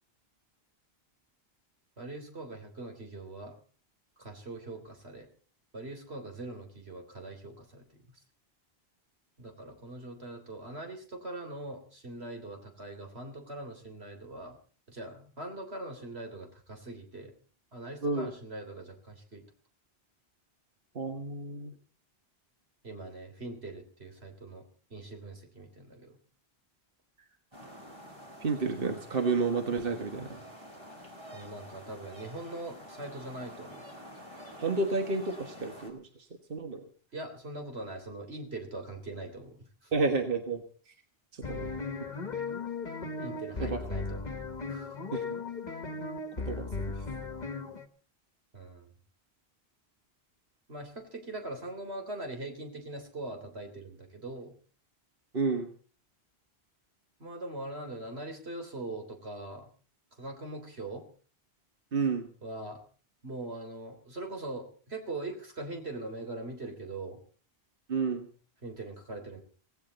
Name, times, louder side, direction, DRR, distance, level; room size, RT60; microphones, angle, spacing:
voice 1, 2.0-3.6 4.2-5.3 5.7-8.1 9.4-14.6 14.9-17.3 17.7-19.4 22.8-24.6 24.9-26.2 31.3-33.9 37.1-39.9 41.5-41.7 43.2-44.4 44.7-45.0 48.5-48.9 50.7-54.5 57.2-59.7 60.2-61.0 62.4-62.8 63.2-67.2 68.6-69.4, right 2 dB, 85° right, 4 dB, 3.7 m, -42 dB
voice 2, 21.0-21.7 28.4-30.4 34.6-36.1 36.5-36.8 39.9-40.9 41.3-41.7 43.6-43.8 45.1-45.4 46.5-46.7 55.3-55.7 61.9-62.3 67.9-68.3, right 4 dB, 60° right, 5 dB, 1.6 m, -30 dB
sound 1, 27.5-35.9, equal, 25° right, 4.1 m, -48 dB
sound 2, 41.4-47.9, left 4 dB, 45° left, 1.4 m, -37 dB
17.5 x 17.0 x 4.1 m, 0.41 s
omnidirectional pair, 1.1 m